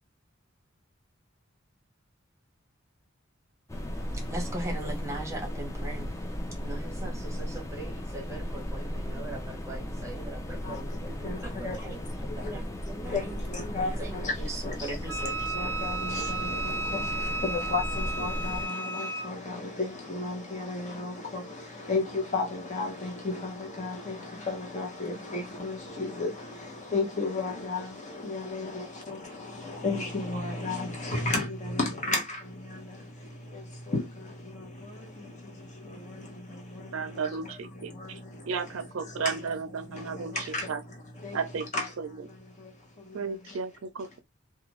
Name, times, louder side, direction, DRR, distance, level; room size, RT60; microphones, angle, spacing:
sound 1, 3.7-18.7, equal, 15° left, 0.5 m, -36 dB
voice 1, 4.0-6.1 6.6-12.0 12.3-13.1 13.7-14.1 14.4-14.5 14.8-15.3, right 1 dB, 15° right, 0.9 m, -40 dB
voice 2, 10.6-39.4 39.9-41.4 41.7-43.2 43.5-43.6, left 3 dB, 40° left, 0.9 m, -35 dB
Wind instrument woodwind instrument, 15.1-19.3, right 2 dB, 60° left, 1.6 m, -33 dB
voice 3, 36.9-40.8 41.3-42.1 43.1-44.2, right 5 dB, 85° right, 0.5 m, -34 dB
2.5 x 2.3 x 3.0 m
head